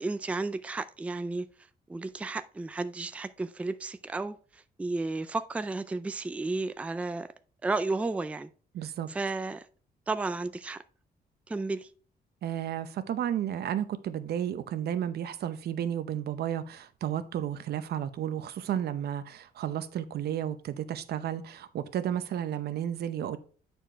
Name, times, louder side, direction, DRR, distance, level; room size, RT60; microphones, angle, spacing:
voice 1, 0.0-1.5 1.9-7.3 7.6-8.5 9.1-9.7 10.1-10.8 11.5-11.9, right 3 dB, 10° right, 0.3 m, -33 dB
voice 2, 8.7-9.1 12.4-23.4, right 10 dB, 75° right, 0.8 m, -32 dB
9.3 x 4.4 x 4.5 m
cardioid pair, 140°, 17 cm